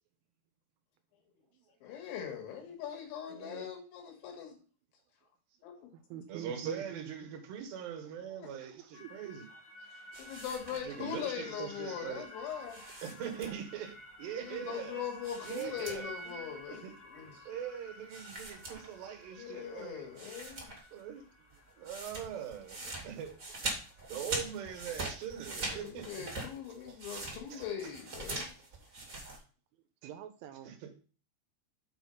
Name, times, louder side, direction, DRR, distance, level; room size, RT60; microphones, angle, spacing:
voice 1, 1.8-4.6 5.6-5.9 8.3-8.5 10.2-12.8 14.4-17.4 19.4-20.7 25.6-28.5, left 8 dB, 75° left, 4.0 m, -41 dB
voice 2, 3.3-3.7 6.3-9.4 10.7-12.3 13.0-15.0 15.4-16.9 17.5-20.1 20.9-21.2 21.8-23.3 24.1-26.3 26.9-27.9 30.6-30.9, right 8 dB, 70° right, 3.2 m, -42 dB
voice 3, 5.9-7.3 8.0-8.1 8.5-9.6 10.2-10.3 14.7-14.8 17.3-17.5 20.2-20.3 28.8-29.4 30.0-30.9, right 10 dB, 85° right, 3.2 m, -49 dB
sound 1, 8.9-25.3, equal, 55° left, 2.2 m, -52 dB
sound 2, 10.1-11.2 12.6-13.8 15.2-16.3 16.6-16.7 18.1-19.3 19.8-19.9 20.2-21.0 21.3-29.4, right 2 dB, 40° right, 1.2 m, -42 dB
7.9 x 4.5 x 5.5 m
omnidirectional pair, 5.5 m